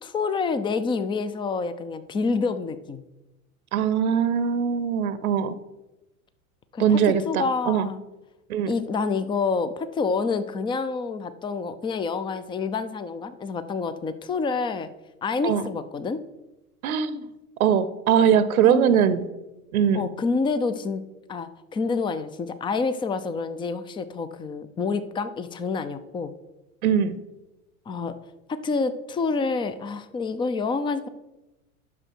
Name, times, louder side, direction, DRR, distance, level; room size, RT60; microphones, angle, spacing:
voice 1, 0.0-3.0 6.7-7.0 7.3-8.0 8.7-14.9 15.2-16.2 18.7-19.1 19.9-21.0 21.3-26.3 27.9-28.1 28.5-31.1, left 4 dB, 10° left, 13 dB, 0.4 m, -28 dB
voice 2, 3.7-5.5 6.8-7.9 8.5-8.7 15.4-15.7 16.8-17.2 17.6-19.3 19.7-20.1 26.8-27.2, right 8 dB, 70° right, 14 dB, 0.7 m, -21 dB
11.0 x 6.4 x 4.5 m, 1.0 s
hypercardioid pair, 90°, 44 cm